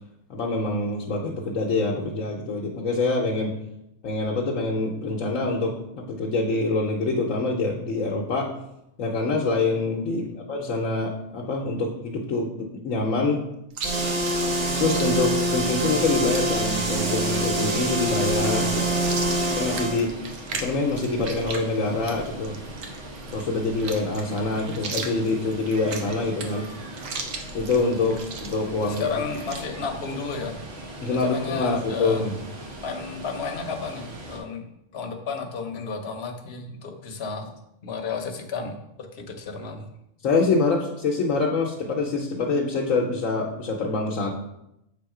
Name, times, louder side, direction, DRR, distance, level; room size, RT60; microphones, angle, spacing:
voice 1, 0.3-3.6 4.0-8.5 9.0-13.4 14.7-18.9 19.6-20.1 20.5-22.6 23.3-26.7 27.5-29.1 31.0-32.3 40.2-44.3, left 3 dB, 80° left, -2 dB, 1.2 m, -25 dB
voice 2, 10.1-10.4 18.7-19.6 28.9-30.6 31.1-32.2 32.8-34.6 34.9-37.5 37.8-38.8 39.1-39.9, left 5 dB, 55° left, 4 dB, 1.1 m, -33 dB
Chewing mastication, 13.7-29.6, right 4 dB, 85° right, 1.2 m, -38 dB
sound 1, 13.8-20.0, right 1 dB, 35° right, 0.9 m, -25 dB
Water, 16.0-34.4, right 1 dB, 65° right, 1.5 m, -40 dB
7.0 x 3.6 x 4.8 m, 0.84 s
omnidirectional pair, 1.3 m